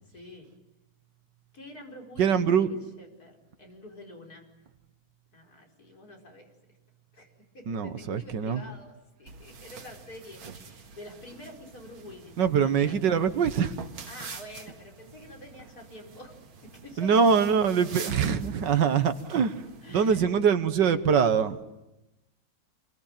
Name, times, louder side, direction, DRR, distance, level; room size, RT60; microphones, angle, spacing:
voice 1, 0.1-0.5 1.5-4.5 5.3-6.8 7.1-7.3 7.5-13.1 14.0-16.3 16.6-17.2 19.8-20.4, left 1 dB, 45° left, 1 dB, 5.5 m, -47 dB
voice 2, 2.2-2.7 7.7-8.6 12.4-13.8 17.0-21.6, right 7 dB, 65° right, 11 dB, 1.8 m, -23 dB
sound 1, 9.3-20.2, right 5 dB, 80° right, 2.6 m, -46 dB
28.0 x 23.0 x 9.0 m, 0.95 s
omnidirectional pair, 2.2 m